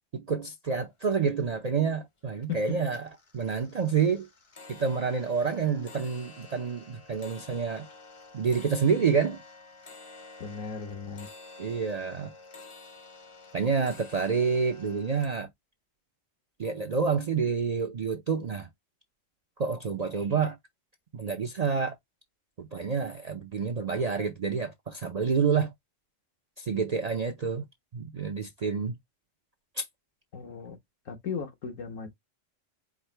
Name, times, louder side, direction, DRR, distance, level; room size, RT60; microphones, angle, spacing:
voice 1, 0.1-3.1 3.3-4.3 4.7-7.9 8.3-9.4 11.6-12.3 13.5-15.5 16.6-18.7 19.6-20.6 21.1-21.9 22.6-25.7 26.6-27.7 27.9-29.0 29.8-29.9, right 5 dB, 50° right, 0.4 m, -28 dB
sound 1, 0.9-1.0 1.3-1.9 2.3-2.6 2.9-15.3, left 3 dB, 35° left, 0.6 m, -50 dB
voice 2, 10.4-11.3 30.3-30.8 31.1-32.1, left 6 dB, 85° left, 1.5 m, -36 dB
4.8 x 2.1 x 4.4 m
omnidirectional pair, 1.3 m